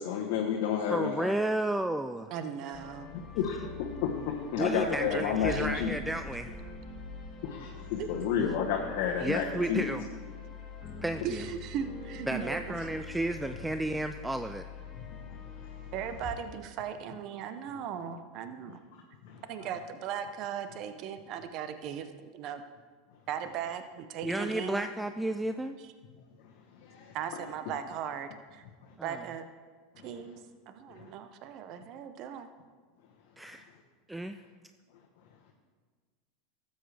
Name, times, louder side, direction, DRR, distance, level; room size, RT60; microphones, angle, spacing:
voice 1, 0.0-1.3 3.1-6.0 7.4-10.0 14.9-15.9 18.7-18.8 19.2-19.7 26.4-27.4 28.8-28.9 29.9-30.1 30.9-31.1 31.8-31.9, left 7 dB, 65° left, 0 dB, 1.1 m, -32 dB
voice 2, 0.9-2.3 4.6-6.5 9.2-10.0 11.0-11.4 12.3-14.6 24.2-25.8 29.0-29.2 33.4-33.7 34.1-34.4, right 1 dB, 5° right, 8 dB, 0.3 m, -32 dB
voice 3, 2.3-3.1 5.0-5.2 5.5-5.7 8.0-8.1 11.2-12.8 15.9-18.8 19.5-22.6 23.3-25.0 27.1-28.6 29.0-29.4 30.0-30.3 30.7-32.5, right 8 dB, 55° right, 9 dB, 0.7 m, -38 dB
sound 1, 2.7-16.3, left 4 dB, 40° left, 2.6 m, -44 dB
13.0 x 7.9 x 3.4 m, 1.5 s
hypercardioid pair, 100°, 0 cm